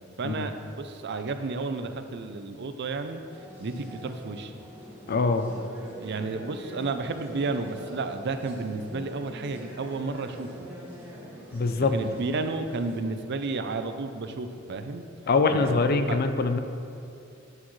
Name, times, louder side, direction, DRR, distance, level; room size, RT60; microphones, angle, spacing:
voice 1, 0.2-3.2 3.6-4.6 6.0-10.7 11.8-15.0 15.6-16.2, right 3 dB, 55° right, 8 dB, 0.5 m, -32 dB
sound 1, 3.3-13.0, equal, 10° right, 1.7 m, -44 dB
voice 2, 5.1-5.4 11.5-11.9 15.3-16.6, left 4 dB, 45° left, 8 dB, 0.5 m, -23 dB
9.6 x 8.5 x 3.2 m, 2.6 s
head